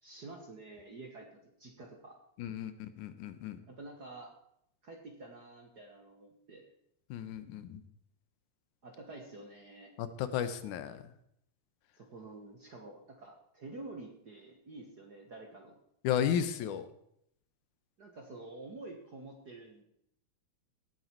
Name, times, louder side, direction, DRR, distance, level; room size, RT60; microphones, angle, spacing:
voice 1, 0.0-2.2 3.6-4.3 4.8-6.6 8.8-10.0 12.0-15.8 18.0-19.8, right 2 dB, 45° right, 2 dB, 1.3 m, -49 dB
voice 2, 2.4-3.6 7.1-7.8 10.0-11.0 16.0-16.9, left 9 dB, 80° left, 11 dB, 2.3 m, -34 dB
17.5 x 7.8 x 4.5 m, 0.75 s
omnidirectional pair, 3.5 m